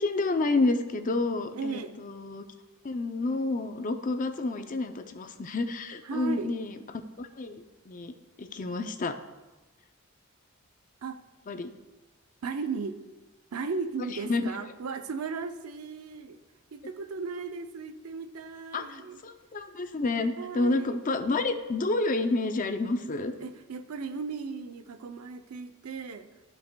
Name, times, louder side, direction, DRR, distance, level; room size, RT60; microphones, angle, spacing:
voice 1, 0.0-2.4 2.8-6.7 7.2-8.1 8.4-9.2 11.5-11.7 14.3-14.5 18.7-23.3, left 2 dB, 35° left, 8 dB, 0.5 m, -29 dB
voice 2, 1.5-2.0 6.0-6.5 11.0-11.2 12.4-13.0 13.5-16.4 16.7-19.2 20.4-21.0 23.4-26.3, right 4 dB, 85° right, 9 dB, 0.6 m, -36 dB
14.0 x 5.3 x 2.2 m, 1.2 s
head